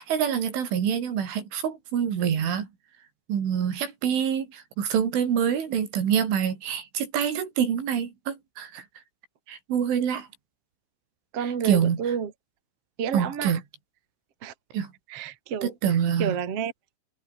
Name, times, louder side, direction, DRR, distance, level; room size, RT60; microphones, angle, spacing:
voice 1, 0.0-2.7 3.3-8.8 9.5-10.3 11.6-12.0 13.1-13.6 14.7-14.9 15.6-16.4, right 8 dB, 70° right, 6.1 m, -26 dB
voice 2, 11.3-12.3 13.0-13.6 14.4-14.5 15.1-15.7 16.2-16.7, right 7 dB, 40° right, 2.7 m, -30 dB
omnidirectional pair, 5.9 m